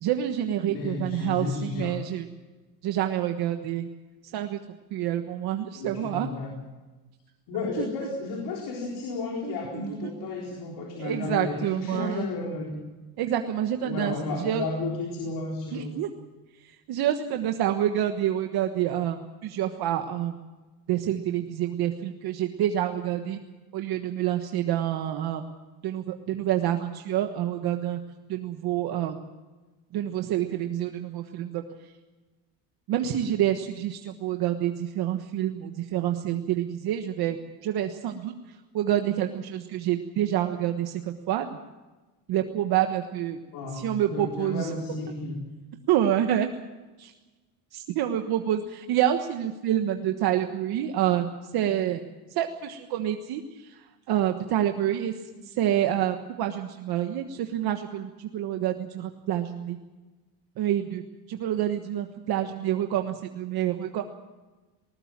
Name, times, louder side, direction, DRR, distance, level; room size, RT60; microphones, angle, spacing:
voice 1, 0.0-2.3 2.8-3.9 4.3-4.6 4.9-6.3 7.8-7.9 9.4-10.1 11.0-12.2 13.2-14.6 15.7-16.1 16.6-20.5 20.9-23.4 23.7-25.4 25.8-28.0 28.3-29.2 29.9-31.9 32.9-41.6 42.3-43.4 43.7-44.7 45.9-46.5 47.0-47.1 47.7-52.0 52.3-55.1 55.4-59.8 60.6-61.0 61.3-64.0, right 11 dB, 50° right, 5 dB, 1.4 m, -28 dB
voice 2, 0.6-2.0 5.8-6.5 7.5-12.8 13.8-15.9 43.5-45.4, left 3 dB, 55° left, 0 dB, 4.3 m, -33 dB
20.0 x 20.0 x 7.5 m, 1.2 s
cardioid pair, 180°, 47 cm